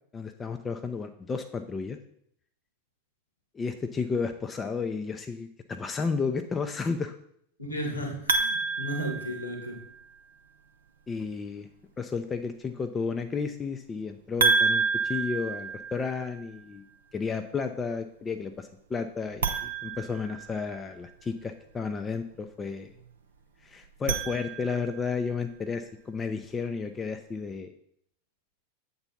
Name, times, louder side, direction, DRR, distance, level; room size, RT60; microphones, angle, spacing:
voice 1, 0.1-2.0 3.5-7.1 11.1-11.7 12.0-16.8 17.1-22.9 23.6-27.7, left 5 dB, 20° left, 7 dB, 0.5 m, -32 dB
voice 2, 7.6-9.8, equal, 80° left, 2 dB, 2.0 m, -34 dB
sound 1, 8.3-10.0 14.4-16.4 19.3-20.9 23.8-25.0, right 4 dB, 65° right, 0.7 m, -29 dB
7.9 x 4.0 x 5.7 m, 0.70 s
figure-of-eight pair, 90°, 0 cm